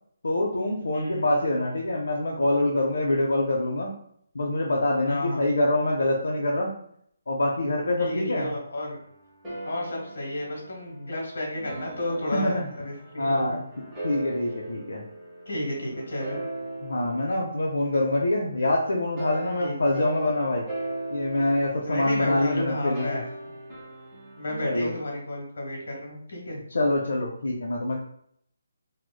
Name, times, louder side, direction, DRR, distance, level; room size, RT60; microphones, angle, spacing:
voice 1, 0.2-3.9 4.3-6.7 7.3-8.5 12.3-12.6 13.2-13.6 14.0-15.0 16.8-20.6 21.1-23.2 24.6-24.9 26.7-28.0, left 1 dB, 85° left, -1 dB, 0.5 m, -25 dB
voice 2, 0.9-1.3 5.1-5.5 8.0-9.0 9.6-13.6 15.4-16.4 19.6-19.8 21.8-23.3 24.4-26.6, left 1 dB, 65° left, 0 dB, 1.2 m, -32 dB
sound 1, 8.9-18.6 19.2-25.1, right 2 dB, 5° right, 0.7 m, -39 dB
3.0 x 2.0 x 2.2 m, 0.67 s
hypercardioid pair, 175°, 0 cm